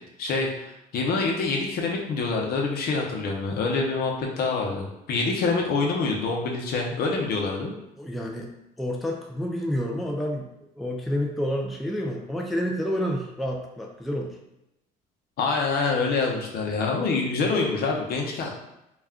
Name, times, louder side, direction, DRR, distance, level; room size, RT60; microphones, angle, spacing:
voice 1, 0.2-7.7 15.4-18.5, left 4 dB, 65° left, 0 dB, 0.7 m, -26 dB
voice 2, 8.0-8.5 8.8-10.5 10.8-14.4, equal, ahead, 0 dB, 0.3 m, -29 dB
2.4 x 2.1 x 3.5 m, 0.88 s
cardioid pair, 110°, 17 cm